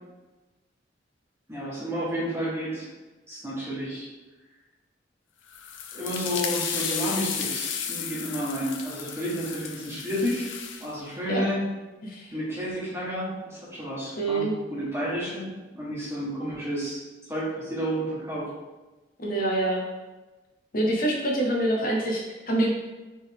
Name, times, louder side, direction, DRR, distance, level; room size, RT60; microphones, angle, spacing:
voice 1, 1.5-2.9 3.3-4.1 5.9-10.5 10.8-11.7 12.3-15.5 15.7-17.0 17.3-18.5, equal, 15° right, -8 dB, 1.3 m, -31 dB
sound 1, 5.5-10.9, left 7 dB, 90° left, 0.5 m, -33 dB
voice 2, 12.0-12.3 14.2-14.5 19.2-19.9 20.7-22.7, right 1 dB, 50° left, -1 dB, 0.9 m, -26 dB
4.2 x 3.5 x 3.6 m, 1.2 s
head